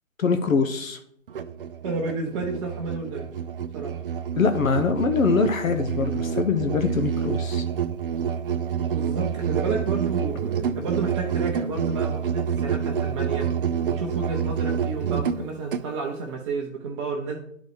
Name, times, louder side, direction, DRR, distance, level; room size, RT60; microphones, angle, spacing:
voice 1, 0.2-1.0 4.4-7.6, left 5 dB, 80° left, 6 dB, 1.0 m, -23 dB
Musical instrument, 1.3-15.9, right 7 dB, 45° right, 0.5 m, -28 dB
voice 2, 1.8-3.3 3.7-4.0 8.9-13.5 13.9-17.4, right 4 dB, 25° right, -1 dB, 0.8 m, -31 dB
10.5 x 4.1 x 4.8 m, 0.71 s
hypercardioid pair, 145°, 40 cm